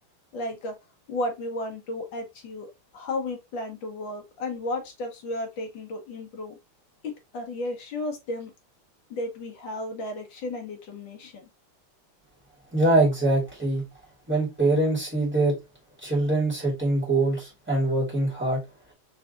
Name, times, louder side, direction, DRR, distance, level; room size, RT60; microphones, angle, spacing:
voice 1, 0.3-0.8 1.1-6.6 7.3-8.5 9.1-11.4, left 2 dB, 70° left, 1.8 m, -33 dB
voice 2, 12.7-13.8 14.3-15.6 16.0-18.6, right 2 dB, 5° right, 2.1 m, -23 dB
4.7 x 3.3 x 2.5 m
omnidirectional pair, 2.3 m